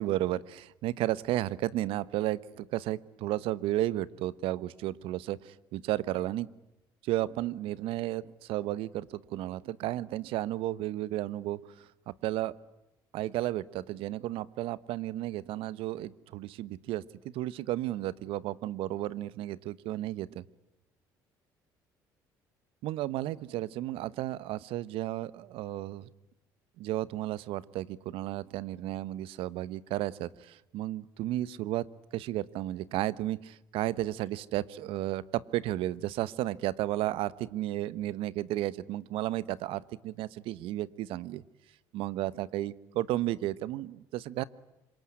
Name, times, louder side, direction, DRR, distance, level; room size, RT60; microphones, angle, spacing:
voice 1, 0.0-6.5 7.0-11.6 12.1-12.5 13.1-17.0 17.3-20.4 22.8-26.1 26.8-31.9 32.1-41.4 41.9-44.4, right 15 dB, 75° right, 18 dB, 1.1 m, -33 dB
26.5 x 23.5 x 9.7 m, 0.95 s
supercardioid pair, 70°, 10 cm